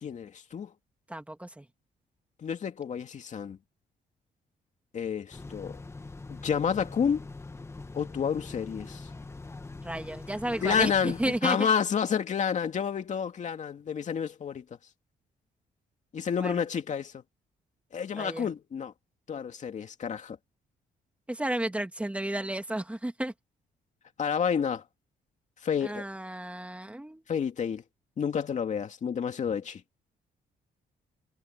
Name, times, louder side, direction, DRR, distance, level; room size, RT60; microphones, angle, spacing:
voice 1, 0.0-0.7 2.4-3.6 4.9-5.8 6.3-7.2 7.9-9.1 10.6-14.6 16.1-17.2 17.9-18.9 19.3-20.4 24.2-24.8 25.6-26.0 27.3-27.8 28.2-29.8, left 7 dB, 45° left, 2.5 m, -29 dB
voice 2, 1.1-1.7 9.8-11.6 16.4-16.6 18.2-18.5 21.3-23.3 25.8-27.2, right 1 dB, 10° right, 2.4 m, -33 dB
sound 1, 5.3-11.4, left 3 dB, 15° left, 1.2 m, -43 dB
cardioid pair, 125°, 17 cm